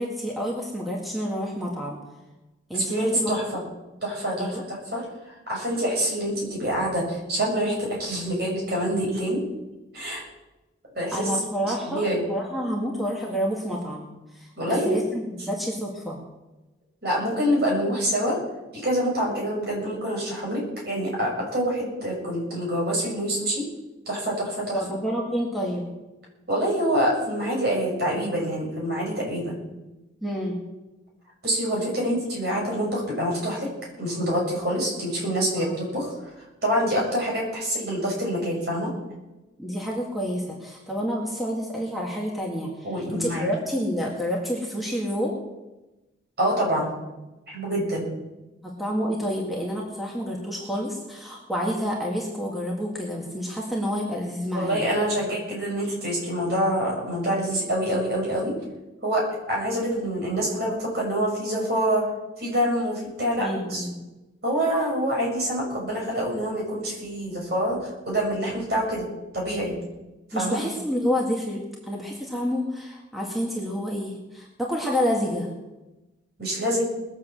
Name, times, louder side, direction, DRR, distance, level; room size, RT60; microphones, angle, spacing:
voice 1, 0.0-2.0 2.7-3.3 4.4-4.6 11.1-16.2 24.7-25.9 30.2-30.6 35.6-35.8 39.6-45.4 48.6-54.9 63.4-64.0 70.3-75.5, equal, ahead, -3 dB, 2.1 m, -29 dB
voice 2, 2.9-3.6 4.0-5.0 5.5-9.4 9.9-10.2 10.9-11.3 11.6-12.2 14.6-15.0 17.0-18.4 18.7-23.7 24.0-24.8 26.5-29.5 31.4-33.7 34.0-35.7 35.9-36.1 36.6-38.9 42.8-43.5 46.4-46.9 47.5-48.1 54.5-58.6 59.0-62.0 62.4-63.8 64.4-69.1 69.3-69.7 70.3-70.6 76.4-76.8, equal, 55° right, -3 dB, 6.8 m, -26 dB
20.0 x 7.6 x 7.6 m, 1.1 s
head